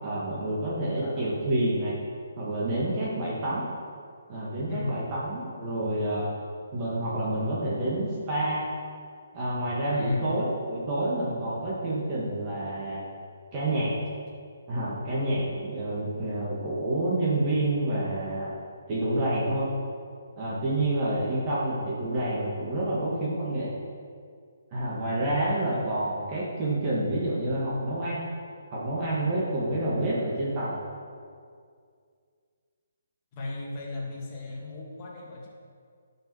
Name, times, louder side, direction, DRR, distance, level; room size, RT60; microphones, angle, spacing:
voice 1, 0.0-2.0 2.4-3.7 4.3-6.3 6.7-8.6 9.3-13.0 13.5-14.0 14.7-18.5 18.9-19.7 20.4-23.8 24.7-28.2 28.7-30.8, right 1 dB, 25° right, -7 dB, 2.0 m, -28 dB
voice 2, 1.0-1.3 4.7-5.0 9.9-10.3 25.4-25.9 33.3-35.5, left 2 dB, 25° left, -4 dB, 2.2 m, -34 dB
11.5 x 5.8 x 6.3 m, 2.2 s
hypercardioid pair, 160°, 0 cm